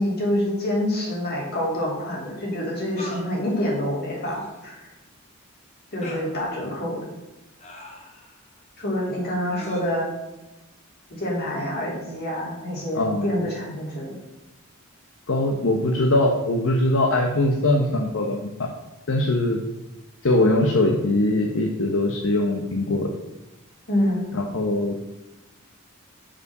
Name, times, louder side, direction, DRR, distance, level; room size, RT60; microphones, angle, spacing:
voice 1, 0.0-4.4 4.6-4.9 5.9-7.0 8.8-10.1 11.1-14.1 23.9-24.3, left 1 dB, 50° left, -3 dB, 3.2 m, -26 dB
sound 1, 1.1-1.2 3.0-3.3 4.2-4.6 6.0-6.3 7.6-8.4 9.6-9.8, left 1 dB, 35° left, 1.4 m, -40 dB
voice 2, 12.9-13.3 15.3-18.7 19.1-19.6 20.2-23.1 24.3-25.0, left 1 dB, 70° left, 2 dB, 1.0 m, -22 dB
7.1 x 5.6 x 6.6 m, 1.0 s
head